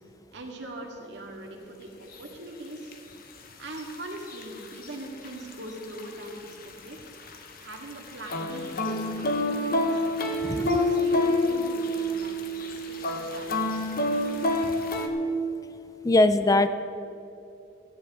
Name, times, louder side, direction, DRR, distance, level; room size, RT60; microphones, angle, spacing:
voice 1, 0.3-1.9 2.2-2.9 3.6-6.4 6.6-7.0 7.6-10.1 10.5-14.9, right 1 dB, 65° right, 0 dB, 2.1 m, -41 dB
sound 1, 2.1-2.2 2.9-3.0 3.8-5.0 5.2-5.5 5.8-7.4 7.7-15.1, left 1 dB, 55° left, 1.1 m, -27 dB
voice 2, 16.0-16.7, left 2 dB, 20° left, 11 dB, 0.4 m, -20 dB
16.5 x 14.5 x 3.7 m, 2.8 s
head